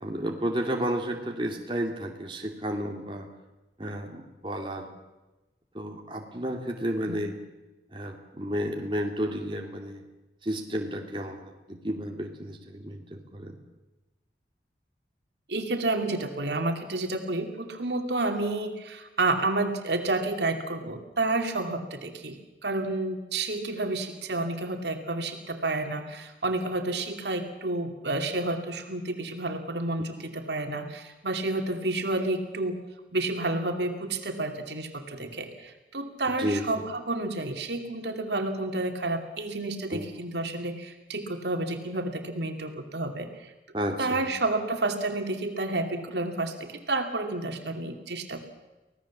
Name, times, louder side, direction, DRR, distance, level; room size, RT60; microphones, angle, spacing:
voice 1, 0.0-3.3 3.8-4.9 5.7-7.3 7.9-10.0 10.4-13.6 36.4-36.8 39.9-40.1 43.7-44.3, equal, 30° right, 1 dB, 2.4 m, -32 dB
voice 2, 15.5-22.4 22.6-32.8 33.1-43.5 44.0-48.4, right 2 dB, 75° right, 5 dB, 2.7 m, -30 dB
25.0 x 17.5 x 7.4 m, 1.1 s
head